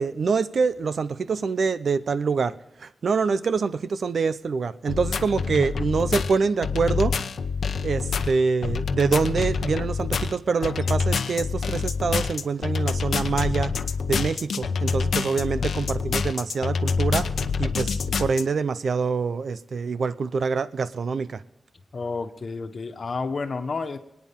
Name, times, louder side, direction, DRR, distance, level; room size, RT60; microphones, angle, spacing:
voice 1, 0.0-7.2 7.8-13.7 14.1-17.3 17.6-21.4, right 5 dB, 65° right, 14 dB, 0.7 m, -25 dB
sound 1, 4.9-18.4, left 5 dB, 90° left, 0.8 m, -26 dB
voice 2, 21.9-24.0, left 4 dB, 50° left, 7 dB, 1.4 m, -30 dB
25.0 x 9.6 x 3.7 m, 0.88 s
wide cardioid pair, 120°, 0 cm